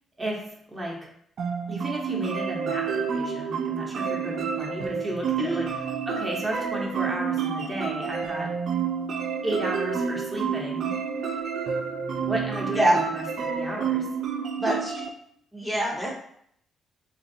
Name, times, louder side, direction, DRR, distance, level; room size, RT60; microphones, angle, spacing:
voice 1, 0.2-1.1 1.7-8.5 9.4-10.9 12.3-13.2 13.5-14.1, right 1 dB, 20° right, -2 dB, 0.8 m, -33 dB
sound 1, 1.4-15.1, right 6 dB, 60° right, 0.3 m, -29 dB
voice 2, 14.6-15.0 15.5-16.1, right 1 dB, 10° left, -4 dB, 0.7 m, -24 dB
3.0 x 2.6 x 2.6 m, 0.67 s
cardioid pair, 90°, 0 cm